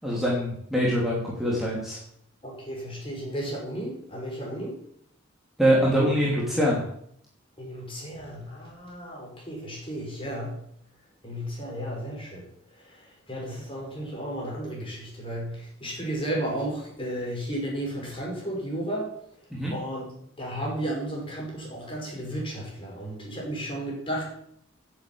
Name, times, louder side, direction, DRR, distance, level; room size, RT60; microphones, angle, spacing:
voice 1, 0.0-2.0 5.6-6.8 19.5-19.7, equal, ahead, -6 dB, 2.9 m, -24 dB
voice 2, 2.4-4.8 7.6-10.6 11.2-12.4 12.7-19.1 19.7-20.1 20.4-24.3, right 1 dB, 25° left, -2 dB, 5.4 m, -33 dB
11.0 x 7.9 x 8.6 m, 0.70 s
head